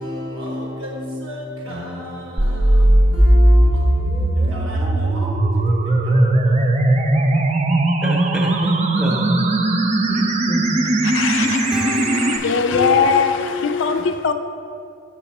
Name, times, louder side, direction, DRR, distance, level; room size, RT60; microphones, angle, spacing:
voice 1, 0.0-7.6 10.6-11.0 13.5-13.6, equal, 90° right, -1 dB, 1.4 m, -34 dB
sound 1, 2.4-12.4, right 1 dB, 35° right, 0.4 m, -17 dB
voice 2, 8.0-9.5 10.1-11.3 11.7-14.0, left 2 dB, 5° right, -2 dB, 0.7 m, -27 dB
voice 3, 11.0-14.3, left 5 dB, 65° left, 8 dB, 0.4 m, -21 dB
6.6 x 5.9 x 4.1 m, 2.4 s
head